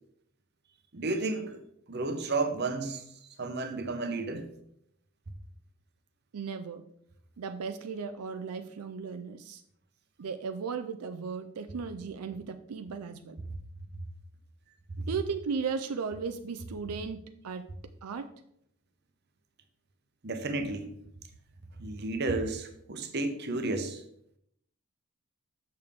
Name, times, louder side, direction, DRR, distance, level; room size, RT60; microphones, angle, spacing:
voice 1, 0.9-1.6 1.9-4.5 20.2-21.0 21.8-24.0, right 3 dB, 50° right, 0.8 m, -32 dB
voice 2, 6.3-6.8 7.4-9.6 10.2-13.4 15.1-17.6 18.0-18.3, right 5 dB, 90° right, 0.5 m, -36 dB
6.7 x 6.3 x 3.6 m
head